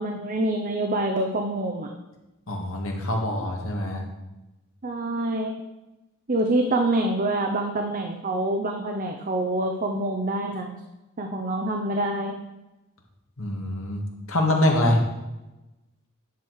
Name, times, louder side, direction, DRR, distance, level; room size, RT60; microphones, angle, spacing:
voice 1, 0.0-1.9 4.8-5.5 6.3-10.7 11.2-12.4, right 1 dB, 40° right, 3 dB, 0.7 m, -26 dB
voice 2, 2.5-4.0 13.4-14.0 14.3-15.0, left 1 dB, 65° left, 1 dB, 1.9 m, -24 dB
10.5 x 6.4 x 4.7 m, 1.0 s
head